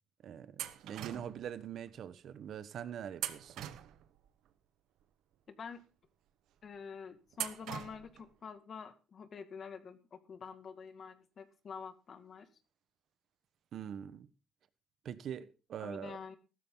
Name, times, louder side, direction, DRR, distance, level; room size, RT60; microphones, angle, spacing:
voice 1, 0.2-3.7 13.7-14.3 15.0-16.2, right 9 dB, 70° right, 1.3 m, -43 dB
sound 1, 0.6-1.5 3.1-4.3 7.3-8.2, right 12 dB, 90° right, 1.2 m, -42 dB
voice 2, 5.5-5.8 6.6-12.5 15.8-16.4, left 6 dB, 50° left, 2.2 m, -47 dB
15.0 x 13.0 x 4.0 m
cardioid pair, 90°, 0 cm